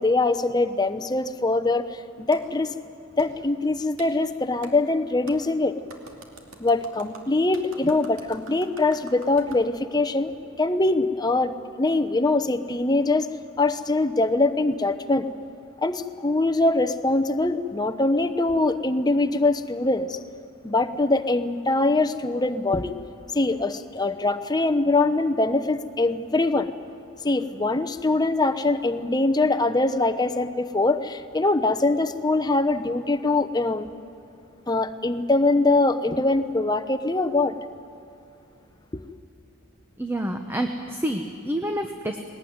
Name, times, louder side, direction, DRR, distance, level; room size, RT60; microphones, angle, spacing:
voice 1, 0.0-2.7 3.2-5.8 6.6-10.3 10.6-13.3 13.6-15.3 15.8-20.2 20.6-22.9 23.3-26.7 27.2-33.9 34.7-37.6 38.9-39.0, left 2 dB, 20° left, 10 dB, 0.7 m, -23 dB
Clapping, 2.3-2.4 3.2-3.3 4.0-4.1 4.6-4.7 5.3-5.4 5.9-9.6, right 3 dB, 80° right, 2.5 m, -46 dB
voice 2, 40.0-42.2, right 1 dB, 10° right, 4 dB, 0.9 m, -28 dB
20.5 x 18.5 x 9.4 m, 2.7 s
head